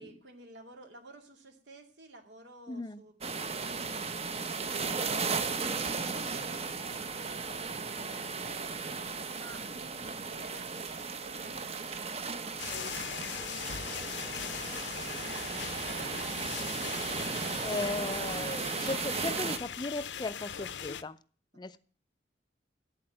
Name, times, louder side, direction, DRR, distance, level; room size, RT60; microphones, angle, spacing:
voice 1, 0.0-13.9 14.2-16.0, right 2 dB, 75° right, 3 dB, 2.4 m, -54 dB
voice 2, 2.7-3.0 17.6-21.2 21.5-21.8, left 3 dB, 25° left, 15 dB, 0.5 m, -37 dB
sound 1, 3.2-19.6, right 4 dB, 35° right, 0.9 m, -36 dB
sound 2, 12.6-21.0, left 8 dB, 75° left, 0.7 m, -40 dB
8.8 x 7.7 x 8.9 m, 0.41 s
head